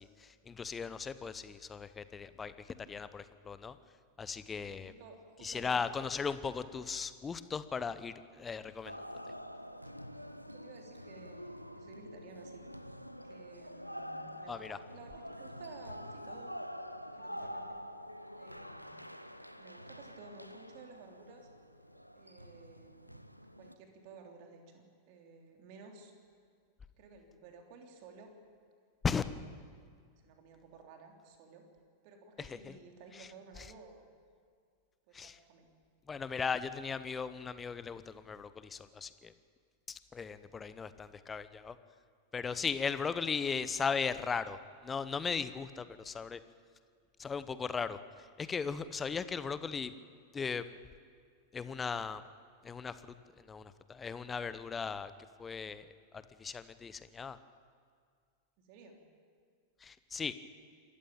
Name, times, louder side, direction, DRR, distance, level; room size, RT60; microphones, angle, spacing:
voice 1, 0.0-3.8 4.2-4.9 5.4-9.0 14.5-14.8 29.0-29.3 32.4-32.7 33.1-33.3 33.6-33.7 35.1-35.4 36.1-39.3 39.9-41.8 42.3-46.4 47.2-49.9 50.3-50.7 51.5-52.2 52.6-55.1 55.4-57.4 59.8-60.3, left 5 dB, 15° left, 14 dB, 0.9 m, -37 dB
voice 2, 4.6-5.8 10.4-12.6 13.2-16.5 17.1-17.8 18.4-19.0 19.6-21.5 22.1-23.2 23.6-26.1 27.0-28.4 30.2-31.7 32.0-34.1 35.1-35.7 40.5-40.7 58.6-59.0, right 4 dB, 45° right, 3 dB, 3.3 m, -54 dB
sound 1, 8.8-23.7, equal, 90° left, 0.8 m, -47 dB
27.0 x 14.0 x 8.9 m, 2.1 s
figure-of-eight pair, 90°, 0 cm